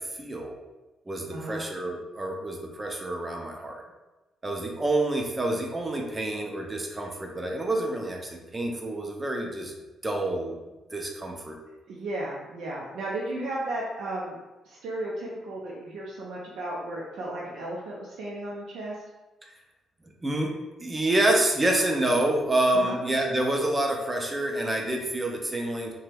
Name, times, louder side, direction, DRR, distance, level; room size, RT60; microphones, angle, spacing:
voice 1, 0.1-0.6 1.1-3.8 4.4-9.7 10.0-10.5 10.9-11.6 19.4-19.5 20.2-20.5 20.8-25.9, right 1 dB, 15° right, 1 dB, 0.5 m, -27 dB
voice 2, 1.3-1.6 11.9-14.4 14.7-19.0 22.7-23.0, right 1 dB, 80° right, -4 dB, 0.5 m, -34 dB
2.9 x 2.2 x 3.3 m, 1.1 s
cardioid pair, 125°, 0 cm